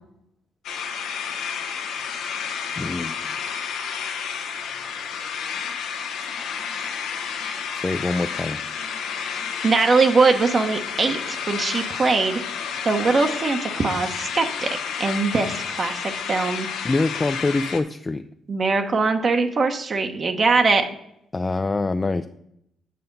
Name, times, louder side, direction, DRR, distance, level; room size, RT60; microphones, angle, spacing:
sound 1, 0.6-17.8, left 7 dB, 90° left, 1.1 m, -31 dB
voice 1, 2.8-3.2 7.8-8.6 16.8-18.2 21.3-22.3, left 3 dB, 25° left, 8 dB, 0.4 m, -24 dB
voice 2, 9.6-12.4 12.8-16.7 18.5-20.8, right 4 dB, 40° right, 5 dB, 0.9 m, -21 dB
7.7 x 5.7 x 5.3 m, 0.76 s
cardioid pair, 90°, 0 cm